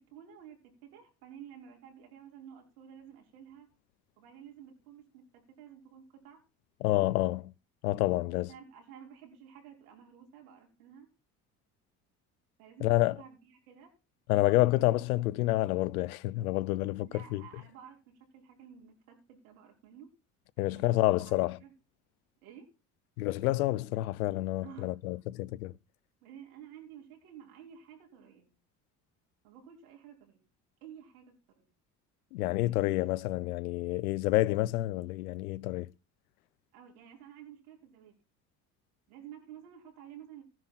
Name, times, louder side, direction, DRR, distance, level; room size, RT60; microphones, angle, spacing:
voice 1, 0.0-3.7 4.2-6.4 8.5-11.1 12.6-13.9 17.1-18.0 18.3-20.1 20.6-21.7 22.4-22.7 24.6-25.0 26.2-28.5 29.4-30.4 30.8-31.7 36.7-38.2 39.1-40.4, right 9 dB, 85° right, 5.7 m, -52 dB
voice 2, 6.8-7.5 7.8-8.5 12.8-13.2 14.3-17.4 20.6-21.6 23.2-25.7 32.3-35.9, left 17 dB, 90° left, 0.6 m, -28 dB
16.0 x 10.5 x 4.4 m
hypercardioid pair, 65°, 42 cm